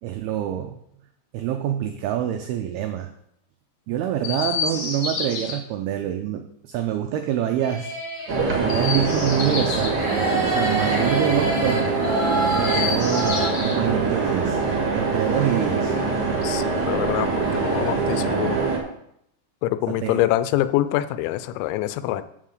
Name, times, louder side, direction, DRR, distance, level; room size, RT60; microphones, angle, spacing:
voice 1, 0.0-0.8 1.3-3.1 3.9-7.9 8.5-11.9 12.6-14.6 14.9-16.0 19.9-20.2, right 10 dB, 90° right, 5 dB, 2.2 m, -26 dB
Chirp tweet, 4.2-5.6 8.6-10.0 12.4-13.8 15.2-16.3 17.4-18.3, left 5 dB, 55° left, 1.7 m, -31 dB
sound 1, 7.6-9.6 9.8-13.5, right 1 dB, 15° right, 1.9 m, -28 dB
sound 2, 8.3-18.8, right 4 dB, 50° right, 1.7 m, -24 dB
voice 2, 16.4-18.6 19.6-22.2, left 14 dB, 85° left, 13 dB, 2.9 m, -25 dB
7.5 x 7.5 x 6.5 m, 0.74 s
omnidirectional pair, 5.3 m